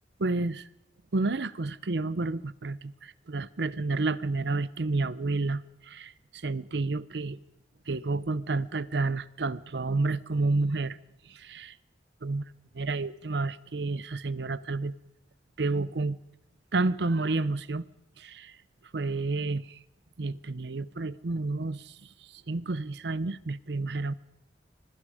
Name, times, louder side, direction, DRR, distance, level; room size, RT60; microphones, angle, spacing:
voice 1, 0.2-0.7 1.1-7.4 7.9-11.0 11.3-11.8 12.2-12.4 12.7-14.9 15.6-16.2 16.7-17.9 18.2-18.6 18.9-19.8 20.2-24.1, right 3 dB, 70° right, 0.7 m, -30 dB
26.0 x 21.5 x 5.0 m
head